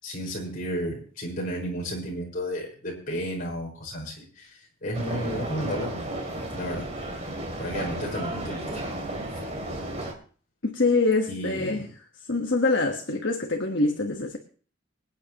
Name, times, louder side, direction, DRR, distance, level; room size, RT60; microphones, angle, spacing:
voice 1, 0.0-6.1 6.5-6.9 7.6-8.7 11.3-11.9, equal, 45° left, 5.1 m, -33 dB
sound 1, 4.9-10.1, right 1 dB, 35° right, 2.6 m, -33 dB
voice 2, 10.6-11.9 12.3-14.4, left 3 dB, 60° left, 1.3 m, -24 dB
25.5 x 9.2 x 3.0 m
head